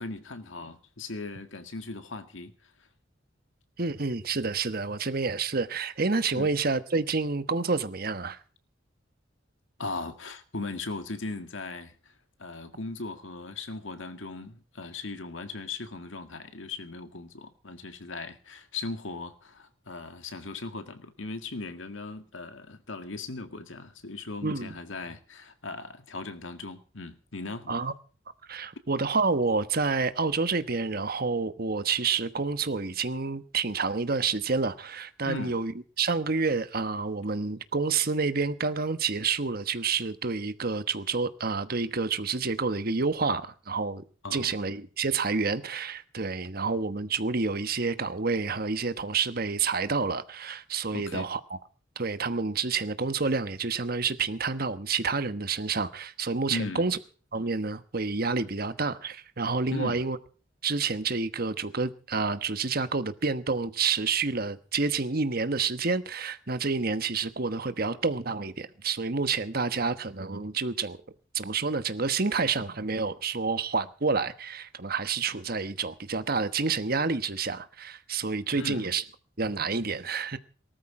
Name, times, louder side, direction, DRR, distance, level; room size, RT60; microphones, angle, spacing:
voice 1, 0.0-2.9 6.3-6.5 9.8-27.8 35.2-35.6 44.2-44.6 50.9-51.3 56.5-56.9 59.7-60.0 78.5-78.9, left 3 dB, 80° left, 1.9 m, -38 dB
voice 2, 3.8-8.4 24.4-24.8 27.7-27.9 28.5-35.7 36.0-44.0 44.3-51.6 52.0-57.0 57.3-60.2 60.6-71.0 71.3-79.0 79.4-80.4, right 4 dB, 50° right, 1.2 m, -29 dB
19.0 x 13.0 x 4.9 m
head